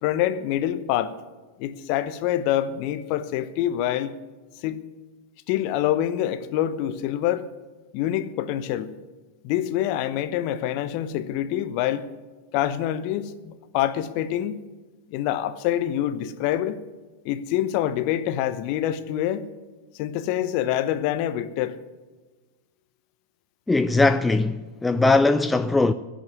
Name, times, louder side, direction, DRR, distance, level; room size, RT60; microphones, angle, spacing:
voice 1, 0.0-1.1 1.6-4.1 4.6-4.8 5.5-7.5 7.9-8.9 9.4-12.1 12.5-14.6 15.1-16.8 17.2-19.5 20.0-21.8, left 12 dB, 45° left, 0.8 m, -26 dB
voice 2, 23.7-25.9, left 3 dB, 10° left, 0.4 m, -20 dB
16.5 x 6.3 x 9.7 m
figure-of-eight pair, 90°, 0 cm